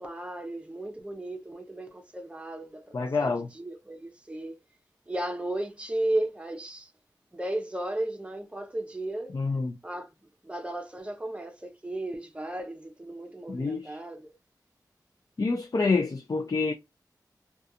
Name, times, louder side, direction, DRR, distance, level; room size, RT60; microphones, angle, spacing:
voice 1, 0.0-4.6 5.1-6.9 7.3-9.3 9.8-10.1 10.4-14.3, right 1 dB, 15° right, 0.7 m, -35 dB
voice 2, 2.9-3.5 9.3-9.7 13.5-14.0 15.4-16.7, left 4 dB, 50° left, 0.4 m, -27 dB
2.4 x 2.3 x 2.7 m
wide cardioid pair, 70°, 7 cm